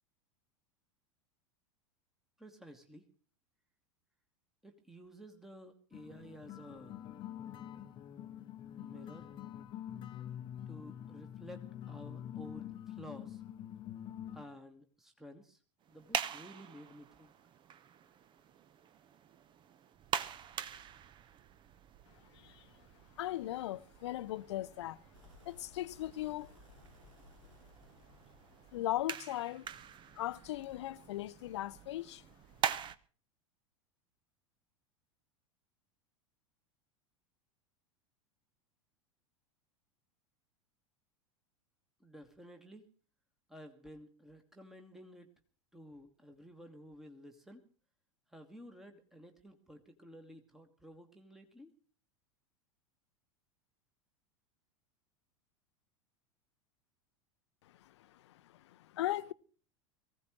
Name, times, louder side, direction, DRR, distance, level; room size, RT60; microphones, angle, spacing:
voice 1, 2.4-3.1 4.6-7.0 8.8-9.3 10.7-13.4 14.3-15.6 15.9-17.3 42.0-42.9 43.5-45.3 45.7-47.6 48.3-51.7, equal, ahead, 1.6 m, -53 dB
sound 1, 5.9-14.5, left 10 dB, 30° left, 0.9 m, -46 dB
sound 2, 15.8-33.0, right 9 dB, 30° right, 0.8 m, -44 dB
voice 2, 22.3-22.7 23.2-25.0 25.5-26.5 28.7-29.7 30.1-32.2 57.8-59.3, left 14 dB, 60° left, 0.7 m, -38 dB
sound 3, 25.1-29.1, left 4 dB, 75° right, 3.1 m, -61 dB
23.5 x 16.0 x 3.1 m
figure-of-eight pair, 85°, 17 cm